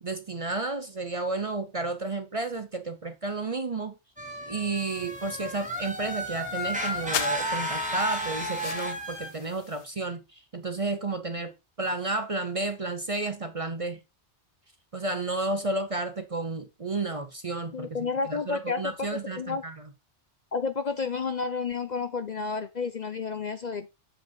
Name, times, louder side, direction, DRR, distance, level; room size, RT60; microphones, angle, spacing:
voice 1, 0.0-4.0 4.5-14.0 14.9-19.8, right 3 dB, 35° right, 0.7 m, -32 dB
sound 1, 4.2-9.3, equal, 5° right, 1.5 m, -32 dB
sound 2, 4.7-9.9, left 9 dB, 80° left, 0.9 m, -40 dB
voice 2, 17.7-19.6 20.5-23.9, left 5 dB, 45° left, 0.7 m, -31 dB
7.5 x 5.0 x 4.4 m
omnidirectional pair, 1.2 m